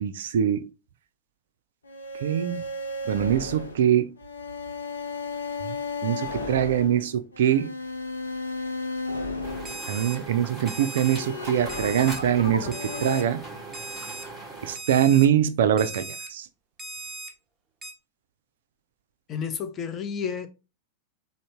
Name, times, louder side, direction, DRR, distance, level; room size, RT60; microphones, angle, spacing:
voice 1, 0.0-0.7 2.2-2.6 3.1-4.1 5.6-7.7 9.9-13.4 14.6-16.5, right 10 dB, 60° right, 0.3 m, -23 dB
sound 1, 1.9-10.4 10.9-13.2, left 3 dB, 75° left, 0.6 m, -34 dB
sound 2, 9.4-14.8, right 3 dB, 5° left, 1.9 m, -39 dB
Alarm, 9.7-10.2 10.7-11.2 11.7-12.2 12.7-13.2 13.7-14.2 14.8-15.3 15.8-16.3 16.8-17.3 17.8-17.9, right 2 dB, 15° right, 0.7 m, -38 dB
voice 2, 19.3-20.5, left 7 dB, 30° left, 0.5 m, -31 dB
3.8 x 2.0 x 3.4 m
figure-of-eight pair, 90°, 0 cm